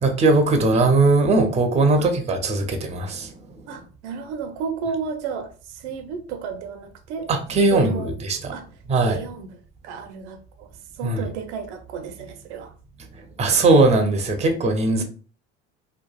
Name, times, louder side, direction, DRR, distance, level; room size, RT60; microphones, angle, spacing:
voice 1, 0.0-3.3 7.3-8.5 8.9-9.3 11.0-11.3 13.4-15.0, right 3 dB, 20° right, 0.5 m, -19 dB
voice 2, 3.7-7.3 7.7-8.2 8.5-8.7 9.0-9.5 9.8-10.7 11.0-12.7 15.0-15.1, right 6 dB, 75° right, 0.6 m, -32 dB
2.9 x 2.3 x 2.3 m
hypercardioid pair, 80°, 35 cm